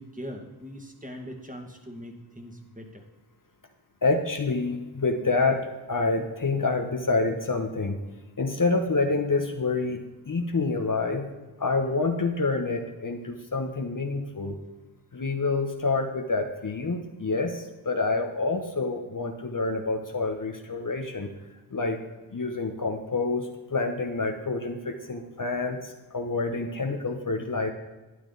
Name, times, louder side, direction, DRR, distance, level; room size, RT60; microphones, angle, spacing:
voice 1, 0.0-3.0, equal, 15° right, 2 dB, 2.1 m, -41 dB
voice 2, 4.0-8.0 8.4-11.3 11.6-14.6 15.1-21.3 21.7-22.0 22.3-27.7, left 3 dB, 40° left, 4 dB, 1.2 m, -27 dB
12.5 x 9.9 x 4.1 m, 1.1 s
cardioid pair, 55°, 48 cm